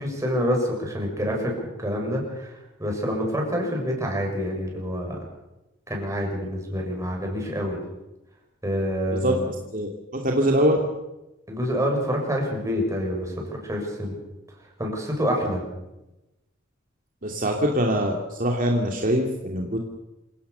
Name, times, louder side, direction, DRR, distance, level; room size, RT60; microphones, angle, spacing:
voice 1, 0.0-5.2 5.9-7.8 8.6-9.5 11.5-14.2 14.8-15.6, equal, 15° right, 0 dB, 7.1 m, -27 dB
voice 2, 9.2-10.9 17.2-19.8, equal, 45° right, 0 dB, 2.7 m, -23 dB
27.5 x 17.0 x 7.0 m, 0.97 s
head